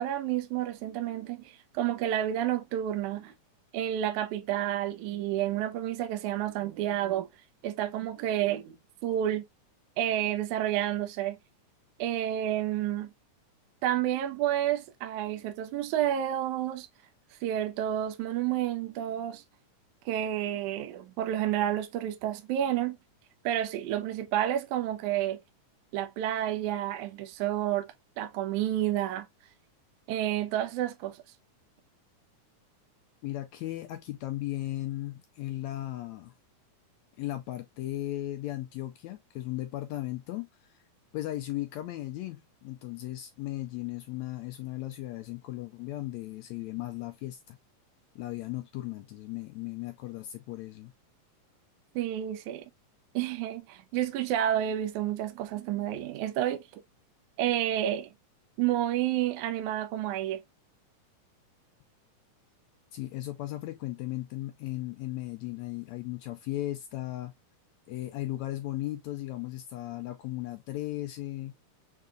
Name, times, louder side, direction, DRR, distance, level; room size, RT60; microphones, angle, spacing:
voice 1, 0.0-3.3 3.7-7.3 7.6-8.8 9.0-9.4 10.0-11.4 12.0-13.1 13.8-16.9 17.4-19.4 20.1-23.0 23.4-25.4 25.9-27.9 28.2-29.3 30.1-31.2 52.0-52.7 53.1-56.6 57.4-58.1 58.6-60.4, right 12 dB, 75° right, 2.1 m, -30 dB
voice 2, 33.2-36.3 37.2-40.7 41.1-47.6 48.1-50.9 62.9-67.3 67.9-71.5, left 16 dB, 85° left, 1.6 m, -36 dB
6.6 x 3.4 x 2.3 m
omnidirectional pair, 3.8 m